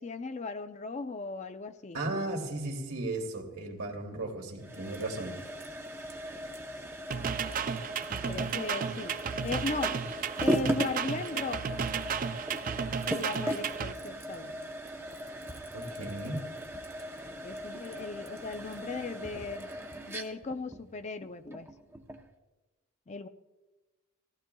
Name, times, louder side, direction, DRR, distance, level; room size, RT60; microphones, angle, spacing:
voice 1, 0.0-2.0 8.1-10.0 10.4-11.8 13.1-14.6 17.4-19.7 20.1-21.7 23.1-23.3, left 3 dB, 30° left, 10 dB, 0.4 m, -37 dB
voice 2, 1.9-5.4 15.7-16.4, right 2 dB, 85° right, 1 dB, 2.4 m, -35 dB
sound 1, 4.6-22.3, equal, 10° right, 0.7 m, -38 dB
sound 2, 7.1-13.9, right 6 dB, 40° right, 0.3 m, -33 dB
18.5 x 14.5 x 2.3 m, 1.2 s
head